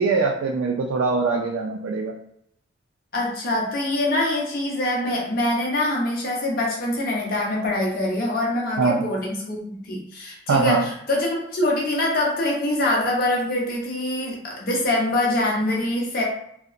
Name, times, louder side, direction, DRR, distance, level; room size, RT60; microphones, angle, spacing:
voice 1, 0.0-2.1 8.8-9.1 10.5-10.9, right 4 dB, 85° right, 1 dB, 0.3 m, -22 dB
voice 2, 3.1-16.2, left 1 dB, 45° left, -3 dB, 0.6 m, -24 dB
2.7 x 2.1 x 2.4 m, 0.72 s
head